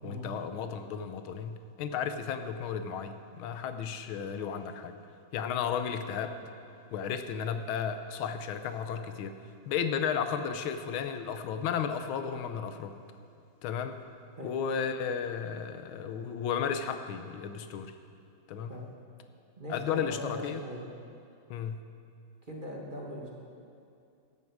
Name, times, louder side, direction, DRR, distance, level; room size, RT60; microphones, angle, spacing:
voice 1, 0.0-5.0 5.3-6.4 6.9-9.4 9.7-13.0 13.6-14.0 14.4-17.9 18.5-18.7 19.7-20.6 21.5-21.8, left 7 dB, 80° left, 9 dB, 1.6 m, -34 dB
voice 2, 19.6-20.9 22.5-23.4, equal, 30° right, -2 dB, 1.3 m, -40 dB
16.0 x 11.0 x 4.7 m, 2.6 s
omnidirectional pair, 2.2 m